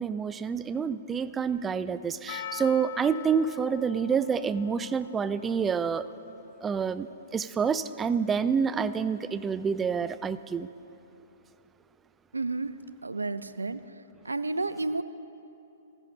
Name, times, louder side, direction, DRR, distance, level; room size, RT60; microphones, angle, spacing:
voice 1, 0.0-6.1 6.6-10.7, right 6 dB, 15° right, 0.3 m, -28 dB
Percussion, 2.3-7.2, left 9 dB, 50° left, 0.4 m, -44 dB
voice 2, 12.3-12.8 13.0-13.8 14.2-15.0, right 3 dB, 85° right, 0.4 m, -31 dB
14.5 x 14.5 x 2.8 m
figure-of-eight pair, 120°, 0 cm